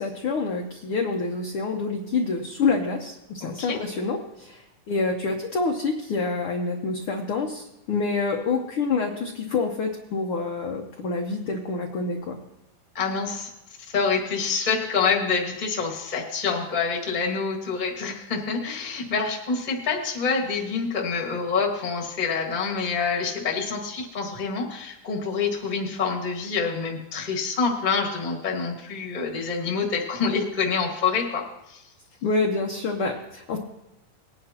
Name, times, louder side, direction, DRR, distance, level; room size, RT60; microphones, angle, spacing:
voice 1, 0.0-4.6 4.9-12.4 32.2-33.6, left 4 dB, 75° left, 1 dB, 1.2 m, -27 dB
voice 2, 3.4-3.8 12.9-13.5 13.9-31.8, left 5 dB, 25° left, 0 dB, 1.0 m, -27 dB
20.0 x 10.0 x 2.9 m, 0.89 s
omnidirectional pair, 3.7 m